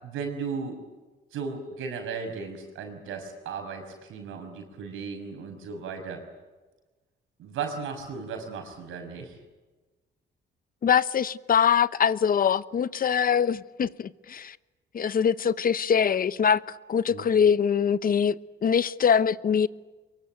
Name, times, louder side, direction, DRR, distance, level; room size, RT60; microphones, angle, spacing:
voice 1, 0.0-0.8 1.3-6.2 7.4-9.4 17.1-17.3, right 5 dB, 85° right, 6.1 m, -36 dB
voice 2, 10.8-14.6 14.9-16.6 16.9-19.7, left 7 dB, 45° left, 0.9 m, -23 dB
24.0 x 23.5 x 9.3 m
cardioid pair, 90°, 20 cm